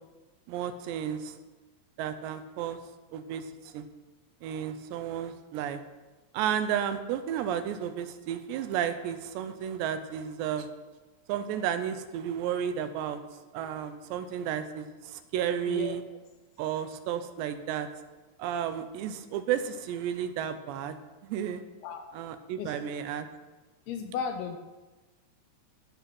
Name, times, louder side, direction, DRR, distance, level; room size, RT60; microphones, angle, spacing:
voice 1, 0.5-1.4 2.0-2.8 3.1-3.9 4.4-5.8 6.3-10.7 11.3-13.2 13.5-16.0 16.6-17.9 18.4-21.0 21.2-21.6 22.1-23.3, right 9 dB, 80° right, 10 dB, 2.9 m, -32 dB
voice 2, 15.7-16.2 21.8-22.1 22.6-22.8 23.9-24.6, left 7 dB, 80° left, 6 dB, 2.4 m, -35 dB
15.0 x 8.4 x 6.0 m, 1.2 s
omnidirectional pair, 5.1 m